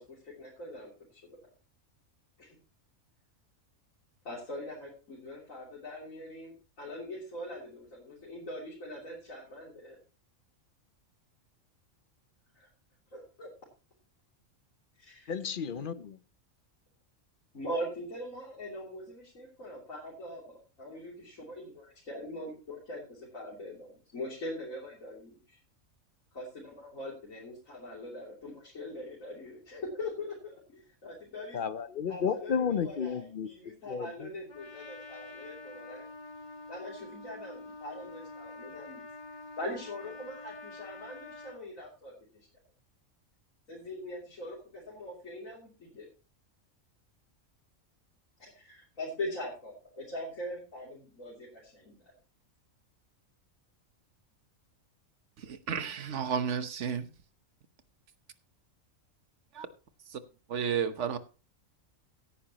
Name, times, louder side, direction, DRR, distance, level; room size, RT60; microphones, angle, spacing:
voice 1, 0.0-1.4 2.4-2.5 4.3-10.0 12.6-12.7 13.1-13.5 15.0-15.3 17.5-25.6 26.3-31.6 32.1-36.1 36.7-39.1 39.6-42.5 43.7-46.1 48.4-52.0, left 1 dB, 80° left, 3.5 m, -42 dB
voice 2, 15.3-16.2 31.5-33.5 33.9-34.3, left 7 dB, 50° left, 0.7 m, -32 dB
Trumpet, 34.5-41.6, left 3 dB, 35° left, 1.6 m, -47 dB
voice 3, 55.4-57.1 59.5-59.7 60.1-60.2 60.5-61.2, right 7 dB, 65° right, 1.3 m, -32 dB
16.5 x 9.8 x 2.9 m
omnidirectional pair, 1.4 m